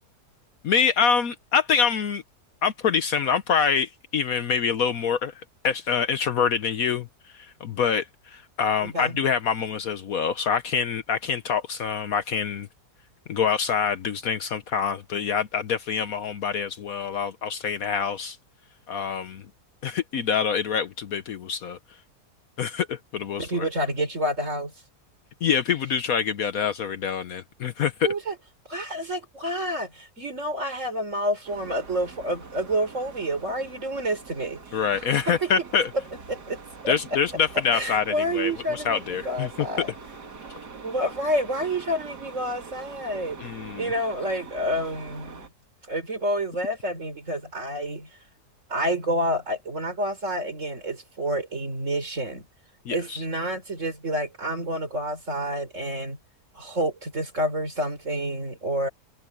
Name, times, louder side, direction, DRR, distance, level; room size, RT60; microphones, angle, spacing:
voice 1, 0.6-2.2 2.6-5.3 5.6-7.1 7.3-12.7 13.3-18.4 18.9-19.4 19.8-21.8 22.6-23.7 25.4-28.1 34.7-35.9 36.9-39.5 43.4-43.9 52.9-53.2, left 7 dB, 65° left, 1.3 m, -25 dB
voice 2, 8.8-9.2 23.4-24.7 28.0-28.3 28.7-35.5 36.3-36.9 37.7-39.9 40.8-43.5 43.8-45.5 45.9-48.1 48.7-52.5 52.9-56.2 56.5-58.9, equal, 50° right, 4.7 m, -29 dB
sound 1, 31.4-45.5, right 4 dB, 85° right, 2.9 m, -44 dB
omnidirectional pair, 1.7 m